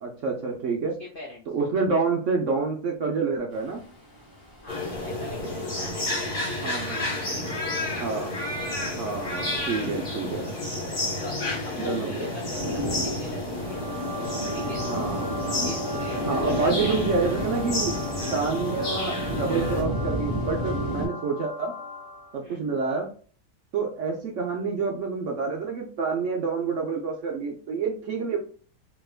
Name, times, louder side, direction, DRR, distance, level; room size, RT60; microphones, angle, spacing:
voice 1, 0.0-0.9 1.5-3.8 6.6-7.1 8.0-8.4 8.9-10.5 11.8-12.3 14.8-15.3 16.3-18.0 18.3-21.7 22.3-23.1 23.7-28.4, right 4 dB, 65° right, 1 dB, 0.7 m, -28 dB
voice 2, 0.8-1.5 4.6-6.9 7.1-8.0 11.2-11.4 11.6-13.9 14.5-14.9 15.6-17.0 22.4-22.6, left 2 dB, 75° left, -1 dB, 0.5 m, -42 dB
sound 1, 3.5-21.1, equal, 20° left, 1.3 m, -34 dB
sound 2, 4.7-19.8, left 1 dB, 45° left, 1.8 m, -31 dB
sound 3, 13.6-22.4, left 1 dB, 20° right, 1.3 m, -37 dB
3.3 x 2.9 x 2.3 m, 0.42 s
omnidirectional pair, 1.8 m